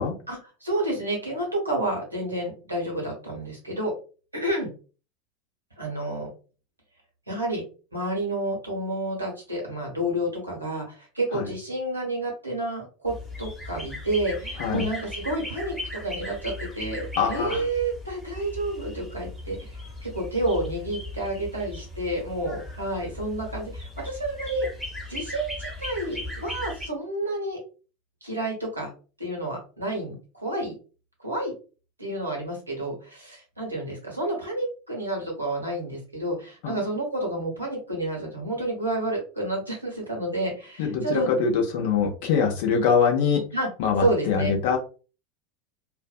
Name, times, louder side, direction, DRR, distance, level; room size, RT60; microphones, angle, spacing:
voice 1, 0.3-3.9 4.3-4.7 5.8-6.3 7.3-7.6 7.9-19.7 20.0-24.7 25.1-27.6 28.2-28.9 29.2-30.7 31.2-31.5 32.0-41.3 43.5-43.7 44.0-44.5, right 1 dB, 85° right, -2 dB, 1.0 m, -30 dB
sound 1, 13.1-26.9, left 1 dB, 5° left, 1.0 m, -38 dB
voice 2, 17.2-17.6 36.6-36.8 40.8-43.4 43.8-44.8, left 6 dB, 55° left, 2 dB, 0.6 m, -23 dB
2.5 x 2.2 x 2.3 m, 0.36 s
figure-of-eight pair, 80°, 0 cm